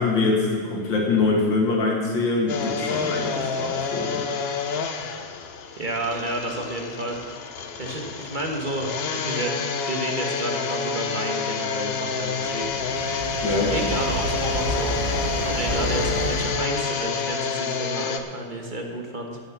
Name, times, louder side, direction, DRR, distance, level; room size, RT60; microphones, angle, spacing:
voice 1, 0.0-4.2 13.4-13.7, left 3 dB, 90° left, -1 dB, 2.8 m, -24 dB
sound 1, 2.5-18.2, left 5 dB, 65° left, 0.6 m, -28 dB
voice 2, 5.8-13.0 13.5-14.9 15.4-19.4, right 1 dB, 30° right, 1 dB, 1.3 m, -31 dB
sound 2, 11.9-16.6, right 1 dB, 50° right, 3.8 m, -30 dB
14.5 x 7.3 x 6.0 m, 2.1 s
omnidirectional pair, 2.0 m